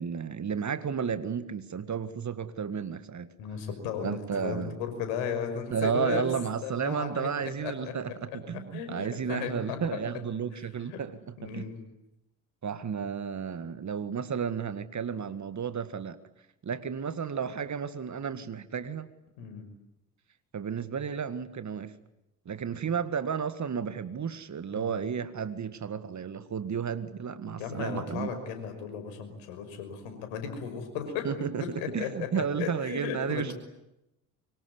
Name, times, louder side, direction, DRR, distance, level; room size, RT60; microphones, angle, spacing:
voice 1, 0.0-3.3 4.0-4.8 5.7-11.7 12.6-16.2 16.6-19.1 20.5-21.9 22.5-28.3 31.2-31.7 31.9-33.5, right 7 dB, 35° right, 1.9 m, -32 dB
voice 2, 3.4-6.3 6.6-7.9 8.7-10.0 10.9-11.0 11.4-11.8 19.4-19.7 24.7-25.0 27.6-31.3 31.6-33.5, left 7 dB, 70° left, 5.8 m, -35 dB
24.5 x 24.0 x 9.7 m
hypercardioid pair, 55°, 48 cm